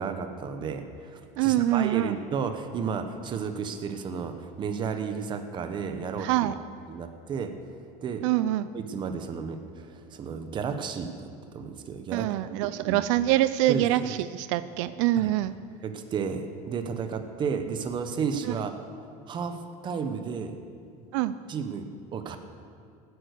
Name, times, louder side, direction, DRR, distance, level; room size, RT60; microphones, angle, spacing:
voice 1, 0.0-6.5 6.9-7.5 8.0-8.2 8.7-12.3 12.8-13.1 13.7-13.8 15.2-15.3 15.8-18.7 19.3-20.5 21.5-22.4, right 6 dB, 30° right, 7 dB, 1.1 m, -33 dB
voice 2, 1.4-2.2 6.2-6.6 8.2-8.7 12.1-15.5 18.5-18.6 21.1-21.3, right 14 dB, 85° right, 14 dB, 0.5 m, -25 dB
16.0 x 9.4 x 6.7 m, 2.4 s
cardioid pair, 150°, 16 cm